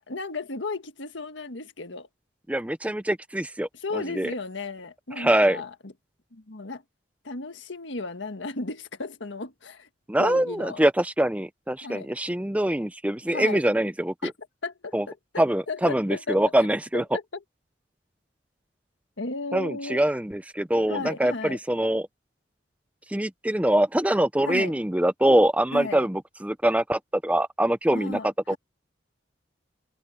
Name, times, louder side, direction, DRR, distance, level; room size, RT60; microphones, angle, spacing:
voice 1, 0.1-2.1 3.7-5.9 6.3-6.8 7.2-9.9 10.2-10.8 11.8-12.1 13.3-13.6 14.2-14.3 14.6-16.4 16.9-17.4 19.2-20.0 20.9-21.6 24.4-24.7 25.7-26.1 27.9-28.6, left 3 dB, 80° left, 1.6 m, -34 dB
voice 2, 2.5-4.3 5.2-5.6 10.1-14.3 14.9-15.1 15.4-17.0 19.5-22.1 23.1-28.2 28.5-28.6, right 1 dB, 5° right, 0.5 m, -24 dB
head